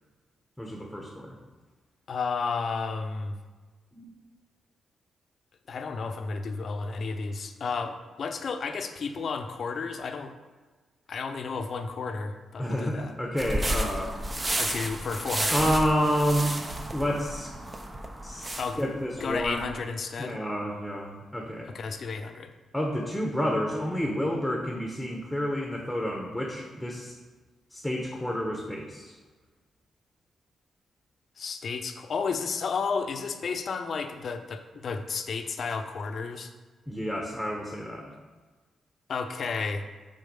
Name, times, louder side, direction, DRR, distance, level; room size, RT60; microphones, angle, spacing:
voice 1, 0.6-1.4 3.9-4.1 12.6-14.1 15.5-17.5 18.2-19.6 20.2-21.7 22.7-27.1 27.7-29.1 36.9-38.1, equal, 5° left, 0 dB, 1.2 m, -29 dB
voice 2, 2.1-3.4 5.7-10.3 11.1-13.1 14.5-15.6 18.6-18.8 19.2-20.4 21.7-22.5 31.4-36.5 39.1-39.9, left 5 dB, 60° left, 7 dB, 0.7 m, -32 dB
sound 1, 13.4-19.8, right 1 dB, 25° right, 0.8 m, -32 dB
6.5 x 4.1 x 5.4 m, 1.3 s
cardioid pair, 70°, 0 cm